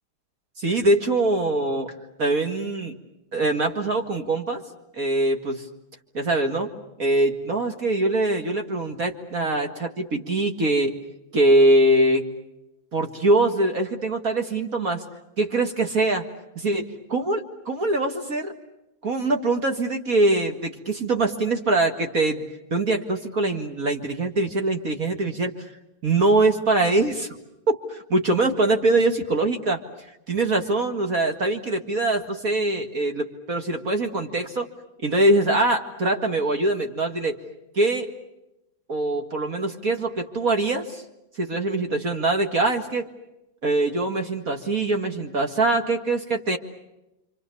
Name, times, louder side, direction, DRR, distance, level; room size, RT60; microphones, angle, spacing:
voice 1, 0.6-1.9 2.2-2.9 3.3-4.6 4.9-5.6 6.1-6.7 7.0-10.9 11.3-12.2 12.9-15.0 15.4-16.2 16.6-18.5 19.0-22.4 22.7-25.5 26.0-27.3 27.7-29.8 30.3-34.7 35.0-37.4 37.8-38.1 38.9-41.0 41.4-43.1 43.6-46.6, right 2 dB, 45° right, 3 dB, 2.4 m, -23 dB
29.0 x 25.5 x 7.0 m, 0.91 s
omnidirectional pair, 2.2 m